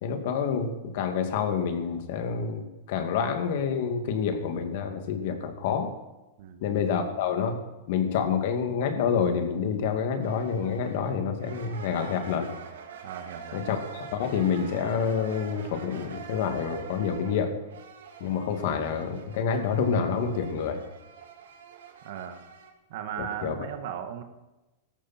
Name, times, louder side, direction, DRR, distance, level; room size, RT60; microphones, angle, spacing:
voice 1, 0.0-5.9 6.6-7.6 7.9-12.6 13.5-17.6 18.2-20.8 23.2-23.6, left 6 dB, 60° left, 5 dB, 2.5 m, -28 dB
sound 1, 10.2-22.7, right 7 dB, 85° right, 2.6 m, -45 dB
voice 2, 13.0-13.6 22.0-22.4 22.9-24.2, right 9 dB, 60° right, 7 dB, 1.7 m, -37 dB
17.5 x 13.5 x 4.5 m, 1.0 s
hypercardioid pair, 140°, 0 cm